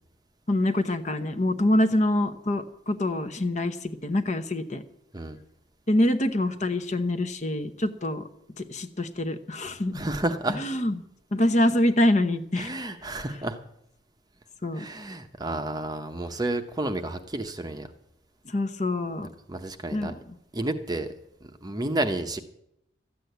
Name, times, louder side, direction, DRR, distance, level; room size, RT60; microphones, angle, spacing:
voice 1, 0.5-4.8 5.9-8.2 8.6-10.0 10.6-10.9 11.3-12.7 14.6-14.8 18.5-19.3 19.9-20.2, left 1 dB, 35° left, 9 dB, 0.9 m, -25 dB
voice 2, 9.9-10.6 12.6-13.6 14.7-17.9 19.5-20.1 20.5-21.1 21.4-22.4, right 2 dB, 20° right, 7 dB, 0.8 m, -31 dB
13.5 x 8.4 x 9.3 m, 0.78 s
head